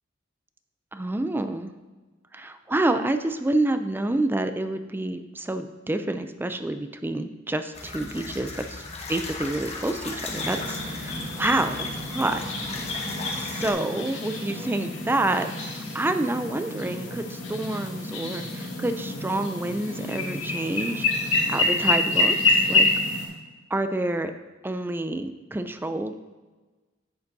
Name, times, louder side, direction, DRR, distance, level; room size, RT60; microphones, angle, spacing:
voice 1, 0.9-1.8 2.3-8.5 9.1-11.8 12.1-12.4 13.4-22.9 23.7-24.3 24.6-26.1, right 2 dB, 10° right, 9 dB, 0.4 m, -28 dB
sound 1, 7.7-13.7, left 3 dB, 35° left, 1.0 m, -37 dB
sound 2, 10.2-23.3, left 2 dB, 75° left, 2.1 m, -27 dB
10.5 x 7.8 x 2.7 m, 1.3 s
head